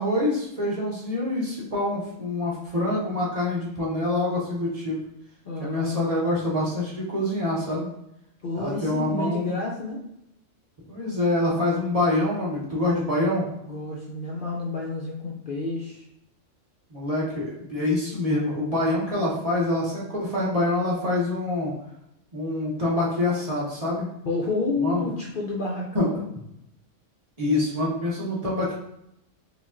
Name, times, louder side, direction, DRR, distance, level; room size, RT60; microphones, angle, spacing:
voice 1, 0.0-5.0 5.6-7.9 8.5-9.6 10.9-13.5 16.9-21.7 22.3-24.1 24.8-25.0 25.9-26.1 27.4-28.7, left 1 dB, 35° right, -6 dB, 1.0 m, -26 dB
voice 2, 5.4-6.1 8.4-10.0 13.7-16.1 24.2-26.2, left 3 dB, 55° left, -2 dB, 0.6 m, -30 dB
4.9 x 2.3 x 2.5 m, 0.80 s
omnidirectional pair, 1.3 m